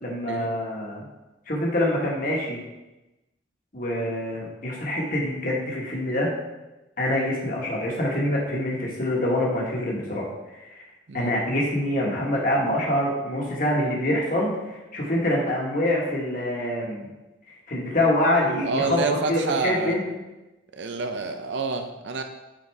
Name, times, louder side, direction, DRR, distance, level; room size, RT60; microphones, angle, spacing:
voice 1, 0.0-1.1 1.5-2.6 3.7-6.3 7.0-10.2 10.7-10.8 11.1-17.1 17.7-19.0 19.3-20.0, left 1 dB, 45° left, -3 dB, 1.6 m, -25 dB
voice 2, 18.4-20.0 20.7-22.2, right 4 dB, 65° right, 6 dB, 0.5 m, -28 dB
8.8 x 4.2 x 3.5 m, 1.0 s
head